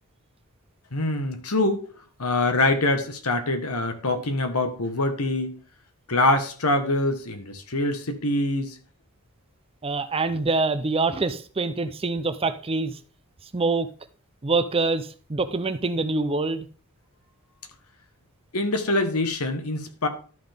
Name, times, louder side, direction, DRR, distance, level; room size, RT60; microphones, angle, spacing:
voice 1, 0.9-1.9 2.2-5.5 6.1-8.8 18.5-20.1, left 2 dB, 75° left, 1.4 m, -24 dB
voice 2, 9.8-13.0 13.5-13.9 14.4-16.7, right 3 dB, 25° right, 0.6 m, -25 dB
12.5 x 5.8 x 3.5 m
head